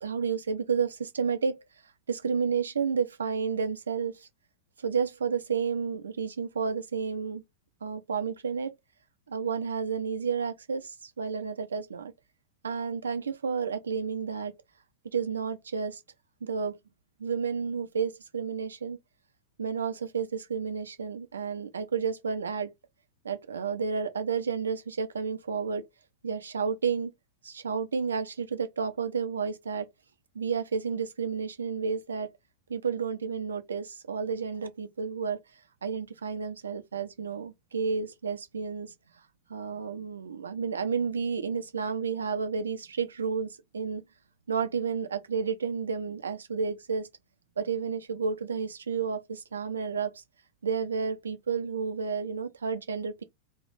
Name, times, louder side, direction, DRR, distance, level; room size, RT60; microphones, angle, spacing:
voice 1, 0.0-1.6 2.1-4.3 4.8-7.4 7.8-8.7 9.3-12.1 12.6-14.5 15.1-16.0 16.4-16.8 17.2-19.0 19.6-22.7 23.2-25.9 26.2-27.1 27.4-29.9 30.3-32.3 32.7-35.4 35.8-38.9 39.5-44.0 44.5-47.1 47.6-50.2 50.6-53.2, right 6 dB, 70° right, 0.4 m, -31 dB
2.3 x 2.0 x 3.1 m
figure-of-eight pair, 90°, 0 cm